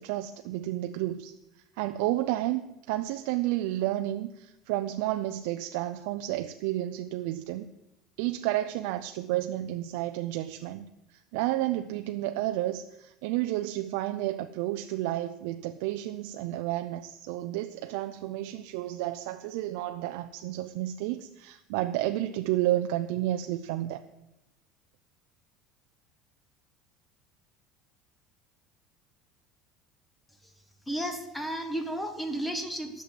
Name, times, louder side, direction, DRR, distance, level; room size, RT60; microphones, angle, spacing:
voice 1, 0.0-1.3 1.8-2.6 2.9-7.7 8.2-10.9 11.1-24.0, right 15 dB, 80° right, 7 dB, 0.5 m, -31 dB
voice 2, 30.3-33.0, right 1 dB, 5° left, 7 dB, 1.2 m, -34 dB
11.0 x 6.8 x 7.7 m, 0.92 s
cardioid pair, 170°, 0 cm